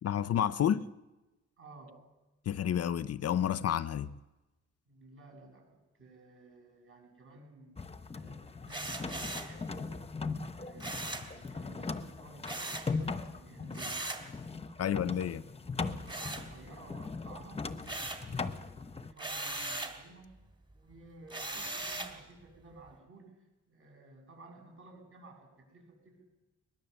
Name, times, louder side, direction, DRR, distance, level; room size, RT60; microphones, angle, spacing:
voice 1, 0.0-0.9 2.5-4.1 14.8-15.4, left 9 dB, 55° left, 0.7 m, -30 dB
voice 2, 1.6-2.0 4.9-10.0 10.5-14.1 14.6-15.5 16.0-17.7 18.1-20.3 20.7-23.4 23.7-26.2, right 2 dB, 45° right, 8.0 m, -55 dB
sound 1, 7.8-19.1, left 4 dB, 20° left, 0.9 m, -39 dB
sound 2, 8.7-9.6 10.8-11.3 12.4-12.9 13.7-14.3 16.1-16.9 17.3-18.3 19.2-20.0 21.3-22.2, right 2 dB, 15° right, 2.4 m, -39 dB
22.5 x 20.5 x 7.1 m
wide cardioid pair, 135°, 29 cm